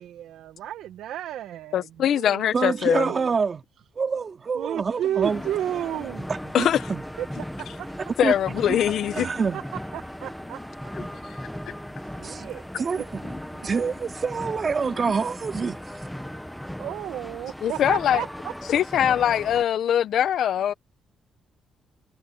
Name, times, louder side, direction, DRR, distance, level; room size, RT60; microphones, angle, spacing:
voice 1, 0.0-3.3 4.5-6.3 7.2-8.0 9.2-10.6 12.0-13.7 16.8-18.5, right 11 dB, 80° right, 1.5 m, -33 dB
voice 2, 1.7-3.1 6.5-6.9 8.2-9.3 17.6-18.2 18.7-20.7, left 10 dB, 70° left, 1.1 m, -22 dB
voice 3, 2.5-3.6 4.0-5.4 6.6-7.0 8.2-8.3 9.1-9.6 12.2-12.5 12.8-13.2 13.6-15.8, right 5 dB, 40° right, 2.8 m, -26 dB
Sneeze, 5.0-15.0, left 4 dB, 30° left, 6.9 m, -49 dB
sound 1, 5.2-19.6, equal, 5° left, 1.1 m, -37 dB
cardioid pair, 90°, 0 cm